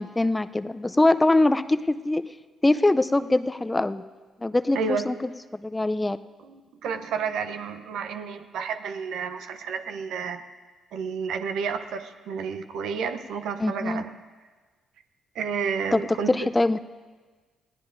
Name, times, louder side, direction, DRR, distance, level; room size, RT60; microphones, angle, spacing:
voice 1, 0.0-2.3 2.6-4.0 4.4-4.8 5.1-5.2 5.6-6.2 13.6-14.0 15.9-16.0 16.3-16.8, left 2 dB, 20° left, 13 dB, 0.5 m, -22 dB
voice 2, 6.4-10.4 10.9-14.1 15.3-16.5, right 6 dB, 70° right, 8 dB, 0.8 m, -31 dB
22.0 x 16.5 x 2.6 m, 1.4 s
hypercardioid pair, 45°, 0 cm